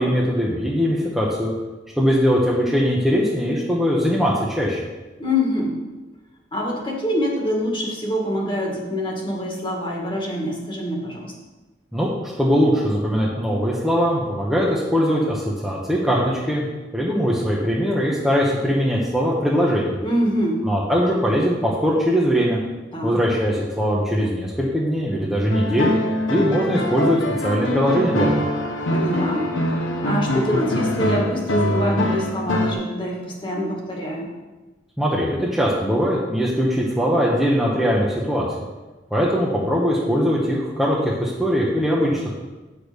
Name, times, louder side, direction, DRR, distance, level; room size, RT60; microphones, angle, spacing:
voice 1, 0.0-1.5 2.0-4.8 11.9-16.7 16.9-20.0 20.6-22.6 23.0-25.9 26.3-27.2 27.4-28.5 35.0-38.5 39.1-42.4, equal, ahead, -5 dB, 1.0 m, -21 dB
voice 2, 5.2-5.8 6.5-11.3 20.0-20.7 22.9-23.2 28.9-29.5 30.0-34.3, left 1 dB, 25° left, -1 dB, 1.8 m, -25 dB
sound 1, 25.5-32.7, left 1 dB, 90° left, 1.2 m, -23 dB
8.7 x 6.4 x 5.1 m, 1.2 s
head